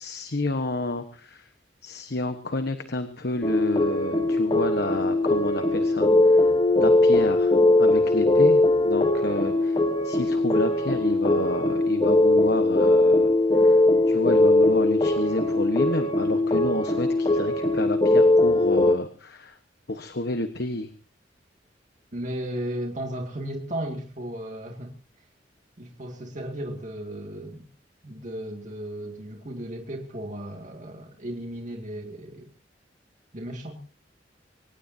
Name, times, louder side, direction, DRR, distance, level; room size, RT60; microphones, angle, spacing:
voice 1, 0.0-1.5 1.8-6.5 6.8-13.3 13.6-13.8 14.1-19.6 19.9-20.9, left 2 dB, 60° left, 8 dB, 1.3 m, -29 dB
sound 1, 3.4-18.9, left 2 dB, 25° left, 1.1 m, -20 dB
voice 2, 22.1-25.0 25.8-27.7 28.0-32.5 33.3-33.8, right 1 dB, 45° right, 1 dB, 2.2 m, -35 dB
24.5 x 18.5 x 2.8 m, 0.39 s
head